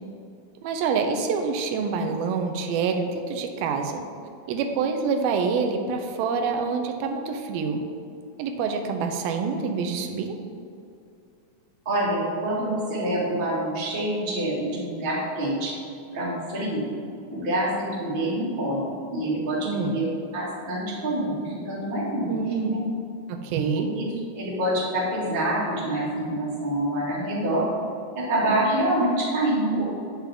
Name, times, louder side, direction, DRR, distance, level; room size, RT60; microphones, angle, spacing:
voice 1, 0.6-4.0 4.5-7.8 8.4-10.4 19.6-20.0 22.3-22.8 23.3-23.9, right 5 dB, 85° right, 5 dB, 2.5 m, -26 dB
voice 2, 11.8-15.7 16.1-16.8 17.3-18.8 19.1-22.3 22.6-22.8 23.8-24.1 24.3-27.6 28.1-29.8, right 1 dB, 20° right, -7 dB, 1.4 m, -26 dB
8.9 x 7.3 x 3.5 m, 2.5 s
omnidirectional pair, 4.2 m